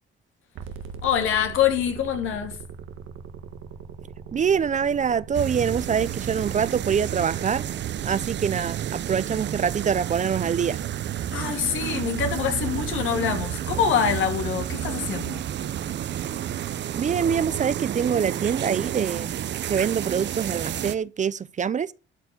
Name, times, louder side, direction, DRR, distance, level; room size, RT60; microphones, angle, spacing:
sound 1, 0.5-8.6, right 6 dB, 90° right, 1.5 m, -41 dB
voice 1, 1.0-2.6 11.3-15.4, left 8 dB, 85° left, 2.8 m, -25 dB
voice 2, 4.3-7.6 8.0-10.8 16.9-19.4 19.7-21.9, right 7 dB, 40° right, 0.6 m, -25 dB
sound 2, 5.3-21.0, right 10 dB, 65° right, 0.8 m, -30 dB
12.5 x 4.8 x 8.2 m
cardioid pair, 90°, 20 cm